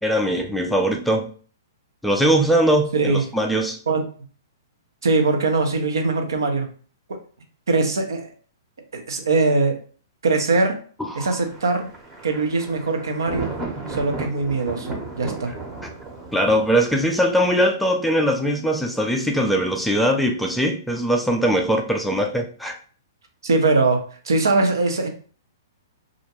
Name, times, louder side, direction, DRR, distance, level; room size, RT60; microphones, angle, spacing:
voice 1, 0.0-1.3 2.0-3.8 11.0-11.3 16.3-22.8, equal, ahead, 2 dB, 0.3 m, -21 dB
voice 2, 5.0-6.7 7.1-7.2 7.7-8.3 8.9-9.8 10.2-10.8 11.2-11.9 12.2-13.5 13.9-15.5 23.4-25.1, right 3 dB, 85° right, 4 dB, 0.6 m, -21 dB
Thunder, 11.2-17.6, right 3 dB, 15° right, 0.7 m, -35 dB
2.5 x 2.1 x 2.8 m, 0.41 s
hypercardioid pair, 135°, 2 cm